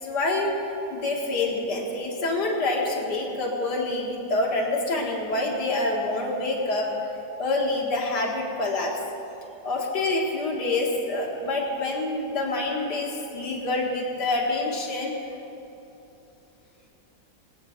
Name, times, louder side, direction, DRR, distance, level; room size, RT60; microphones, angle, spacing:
voice 1, 0.0-0.5 0.9-6.9 7.4-9.0 9.6-15.1, left 2 dB, 75° left, -1 dB, 2.5 m, -26 dB
20.5 x 8.9 x 5.9 m, 2.9 s
omnidirectional pair, 1.8 m